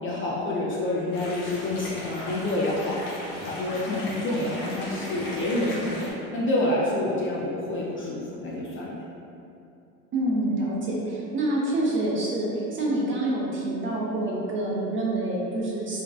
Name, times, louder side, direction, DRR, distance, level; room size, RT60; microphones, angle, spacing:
voice 1, 0.0-3.0 3.5-9.0, left 1 dB, 30° left, -5 dB, 0.4 m, -28 dB
sound 1, 1.1-6.1, left 1 dB, 85° left, 0.7 m, -37 dB
voice 2, 10.1-16.0, right 1 dB, 30° right, -4 dB, 0.5 m, -27 dB
2.5 x 2.2 x 2.3 m, 2.6 s
hypercardioid pair, 80°, 42 cm